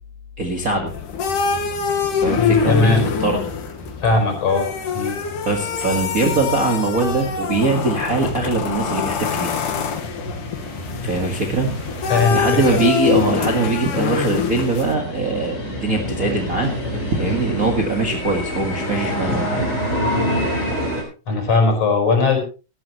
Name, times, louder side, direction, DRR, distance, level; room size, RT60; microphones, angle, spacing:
voice 1, 0.4-0.9 2.2-3.5 5.5-9.6 11.0-11.7 12.3-16.7 17.1-19.6, right 3 dB, 35° right, 3 dB, 1.6 m, -22 dB
sound 1, 0.9-14.9, left 6 dB, 75° left, 3.1 m, -24 dB
sound 2, 2.2-4.2 4.6-4.7 5.2-5.3 5.6-5.7 6.0-21.0, equal, 20° left, 5.9 m, -28 dB
voice 2, 2.4-3.1 4.0-4.7 4.9-5.1 12.1-12.4 12.7-12.8 21.3-22.4, left 3 dB, 50° left, 5 dB, 5.7 m, -18 dB
18.5 x 13.0 x 3.1 m, 0.33 s
omnidirectional pair, 3.7 m